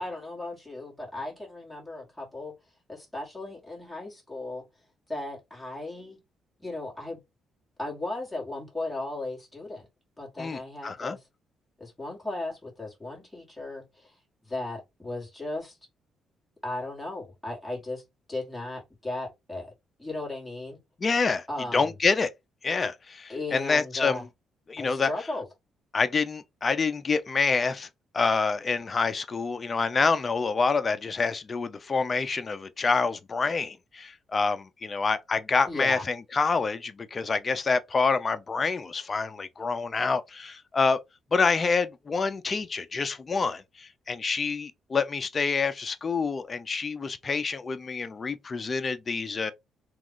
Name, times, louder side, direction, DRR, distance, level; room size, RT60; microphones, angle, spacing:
voice 1, 0.0-2.5 2.9-4.6 5.1-6.2 6.6-7.2 7.8-9.9 10.2-11.2 11.8-14.2 14.5-15.8 16.6-18.0 18.3-19.7 20.0-20.8 21.5-21.9 23.3-24.2 24.8-25.5 35.7-36.0, left 2 dB, 5° left, 1.7 m, -36 dB
voice 2, 10.4-11.2 21.0-21.5 21.7-22.3 22.6-24.2 24.7-25.1 25.9-27.9 28.1-41.0 41.3-49.5, left 4 dB, 35° left, 0.4 m, -27 dB
3.0 x 2.4 x 3.7 m
cardioid pair, 90°, 0 cm